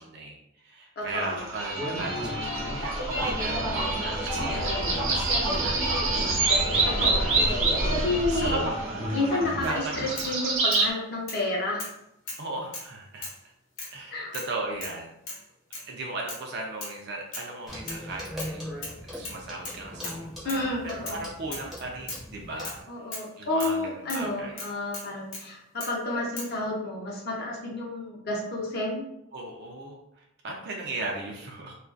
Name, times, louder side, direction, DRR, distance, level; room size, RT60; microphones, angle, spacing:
voice 1, 0.0-3.6 4.0-6.3 7.0-7.4 8.3-10.4 12.4-13.3 13.9-15.1 15.9-18.7 19.1-22.8 23.1-24.6 29.3-31.8, right 2 dB, 50° right, 0 dB, 0.4 m, -37 dB
voice 2, 1.0-1.4 6.9-7.3 7.7-8.6 9.1-11.9 14.1-14.3 20.4-21.2 22.6-29.1, left 2 dB, 45° left, -3 dB, 0.5 m, -30 dB
sound 1, 1.2-10.9, right 2 dB, 70° right, 0.8 m, -27 dB
sound 2, 9.6-9.8 10.2-10.9 11.3-11.4 11.8-12.0 12.3-12.9 13.2-13.4 13.8-14.0 14.3-14.5 14.8-15.0 15.3-15.4 15.7-15.9 16.3-16.5 16.8-17.0 17.3-17.5 17.9-18.5 18.8-19.0 19.2-20.2 20.5-20.6 21.1-21.3 21.5-21.7 22.1-22.3 22.6-22.8 23.1-23.3 23.6-23.8 24.1-24.3 24.6-25.5 25.8-26.0 26.4-26.5, left 2 dB, 75° left, 0.8 m, -38 dB
Clock, 17.7-22.8, equal, ahead, 0.5 m, -40 dB
2.3 x 2.2 x 2.4 m, 0.80 s
head